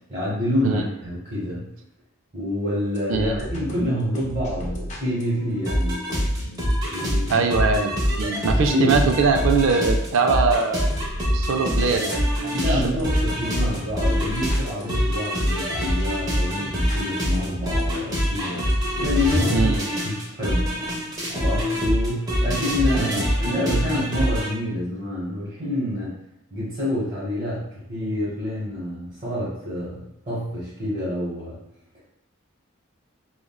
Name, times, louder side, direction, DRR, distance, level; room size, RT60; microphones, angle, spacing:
voice 1, 0.1-1.7 2.3-6.1 6.9-7.5 8.7-9.0 12.5-18.6 19.0-19.7 20.0-20.8 21.3-26.1 26.5-31.6, left 1 dB, 35° right, -9 dB, 1.0 m, -27 dB
sound 1, 2.9-19.6, equal, 35° left, 0.4 m, -35 dB
sound 2, 5.7-24.5, equal, 20° right, 0.6 m, -24 dB
voice 2, 7.3-7.9 8.2-10.9 11.3-12.8 19.5-19.8 23.0-23.2, right 4 dB, 70° right, 4 dB, 0.3 m, -22 dB
3.5 x 2.1 x 2.2 m, 0.82 s
head